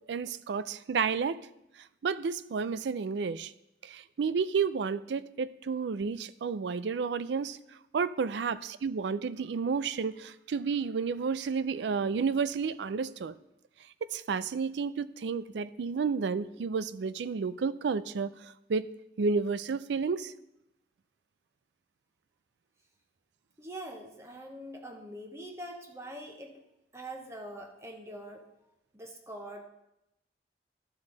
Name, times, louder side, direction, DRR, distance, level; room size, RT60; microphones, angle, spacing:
voice 1, 0.1-1.4 2.0-3.5 3.8-7.6 7.9-13.3 14.1-18.9 19.2-20.3, right 5 dB, 75° right, 16 dB, 0.4 m, -31 dB
voice 2, 23.6-26.6 26.9-28.5 28.9-29.7, right 1 dB, 15° right, 2 dB, 0.9 m, -43 dB
12.5 x 5.4 x 3.9 m, 0.85 s
head